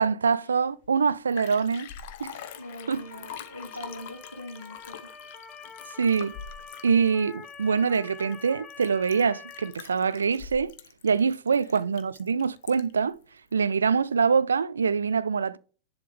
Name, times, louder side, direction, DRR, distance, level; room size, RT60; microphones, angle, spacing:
voice 1, 0.0-1.9 2.2-2.4 2.9-3.0 6.0-6.3 6.8-10.7 11.0-13.1 13.5-15.6, right 5 dB, 70° right, 0.3 m, -24 dB
Liquid, 0.8-0.9 1.1-13.1 13.5-13.6, left 8 dB, 50° left, 0.8 m, -44 dB
Motor vehicle (road) / Siren, 2.2-9.7, left 5 dB, 15° left, 1.0 m, -46 dB
voice 2, 2.6-5.1 11.5-11.8, equal, 90° left, 0.9 m, -43 dB
10.5 x 3.5 x 3.4 m
figure-of-eight pair, 90°, 0 cm